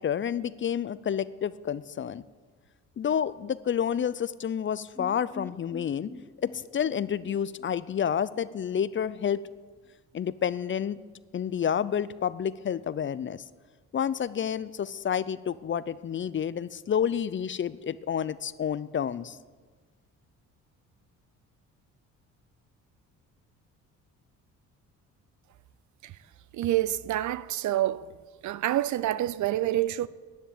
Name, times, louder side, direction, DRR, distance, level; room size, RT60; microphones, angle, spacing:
voice 1, 0.0-2.2 3.0-6.1 6.4-9.4 10.1-11.0 11.3-13.4 13.9-19.4, left 8 dB, 35° left, 0.5 m, -29 dB
sound 1, 4.9-8.8 9.1-9.2 9.5-9.6, left 3 dB, 5° left, 0.8 m, -47 dB
voice 2, 26.5-28.1 28.4-30.1, right 13 dB, 60° right, 0.6 m, -27 dB
10.5 x 10.0 x 8.7 m
supercardioid pair, 70°, 34 cm